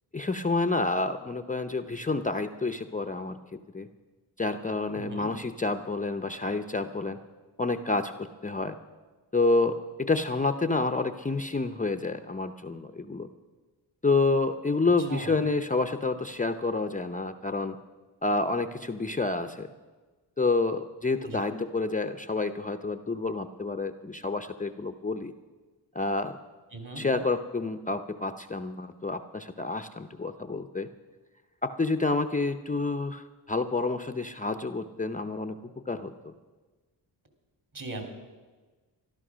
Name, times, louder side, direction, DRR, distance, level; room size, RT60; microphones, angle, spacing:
voice 1, 0.1-3.4 3.7-3.9 4.4-7.2 7.6-8.8 9.3-13.3 14.0-17.8 18.2-19.7 20.4-25.3 25.9-26.4 27.0-30.9 31.6-36.3, left 3 dB, 20° left, 9 dB, 0.6 m, -29 dB
voice 2, 4.9-5.3 15.0-15.3 21.2-21.4 26.7-27.1 37.7-38.0, right 2 dB, 45° right, 5 dB, 3.4 m, -38 dB
14.0 x 12.0 x 6.2 m, 1.3 s
cardioid pair, 65°, 44 cm